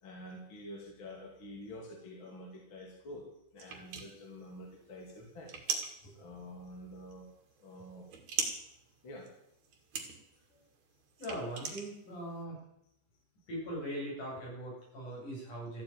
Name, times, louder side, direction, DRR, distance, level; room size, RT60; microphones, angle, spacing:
voice 1, 0.0-3.3 3.5-5.6 6.0-7.3 7.6-8.1 9.0-9.3, left 1 dB, 40° left, 0 dB, 3.4 m, -48 dB
sound 1, 3.6-12.4, right 6 dB, 65° right, 3.4 m, -41 dB
voice 2, 11.2-12.6 13.5-15.8, right 1 dB, 70° left, -4 dB, 9.5 m, -40 dB
14.5 x 8.7 x 9.3 m, 0.75 s
omnidirectional pair, 3.7 m